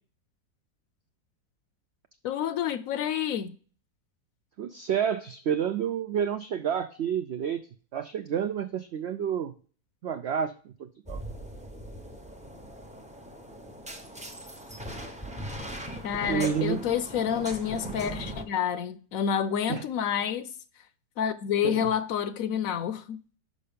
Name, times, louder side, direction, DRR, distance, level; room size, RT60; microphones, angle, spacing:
voice 1, 2.2-3.6 16.0-20.5 21.2-23.2, left 8 dB, 70° left, 0.9 m, -29 dB
voice 2, 4.6-7.6 7.9-9.5 10.0-11.2 16.3-16.8 19.7-19.8 21.6-21.9, right 8 dB, 85° right, 0.6 m, -29 dB
sound 1, 11.1-18.4, right 1 dB, 10° right, 0.4 m, -40 dB
6.3 x 5.6 x 5.1 m
omnidirectional pair, 1.7 m